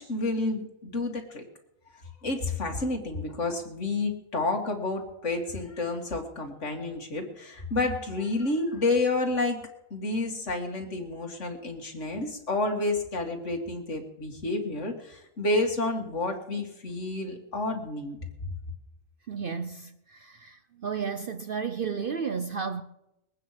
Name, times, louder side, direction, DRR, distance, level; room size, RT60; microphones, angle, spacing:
voice 1, 0.0-1.4 1.9-9.6 9.9-18.2, left 2 dB, 60° left, 2.4 m, -30 dB
voice 2, 19.3-22.8, right 6 dB, 50° right, 0.7 m, -33 dB
21.5 x 9.1 x 5.8 m
omnidirectional pair, 1.4 m